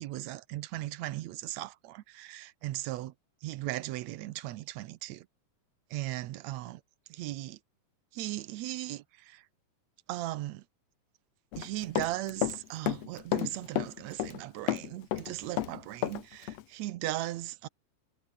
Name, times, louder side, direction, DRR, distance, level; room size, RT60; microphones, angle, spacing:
voice 1, 0.0-3.1 3.4-5.3 5.9-6.8 7.1-7.6 8.1-9.4 10.1-10.6 11.6-17.7, right 16 dB, 75° right, 1.7 m, -37 dB
Run, 11.5-12.6 12.9-14.4 14.7-16.2 16.5-16.6, left 12 dB, 65° left, 1.9 m, -31 dB
omnidirectional pair, 3.9 m